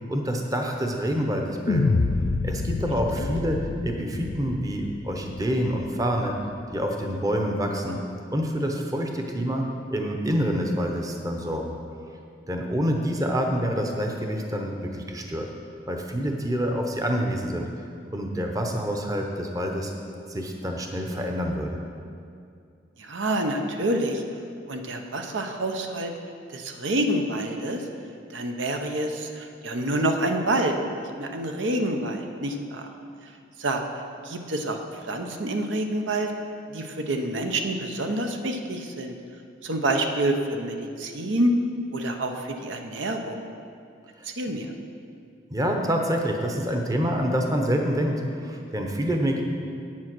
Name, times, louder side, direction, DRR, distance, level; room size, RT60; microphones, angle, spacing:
voice 1, 0.1-2.0 2.4-3.6 3.8-6.3 6.7-8.0 8.3-11.8 12.5-15.5 15.9-19.9 20.3-21.8 44.2-44.3 45.5-49.4, equal, 20° right, 2 dB, 0.7 m, -27 dB
sound 1, 1.7-6.0, left 3 dB, 50° left, 0.4 m, -27 dB
voice 2, 23.0-24.2 24.7-26.1 26.5-27.9 28.3-30.7 31.2-32.8 33.6-33.8 34.2-34.8 35.1-36.3 36.7-39.2 39.6-41.5 41.9-43.4 44.2-44.7, right 1 dB, 85° right, 4 dB, 0.8 m, -27 dB
8.6 x 7.4 x 6.1 m, 2.4 s
head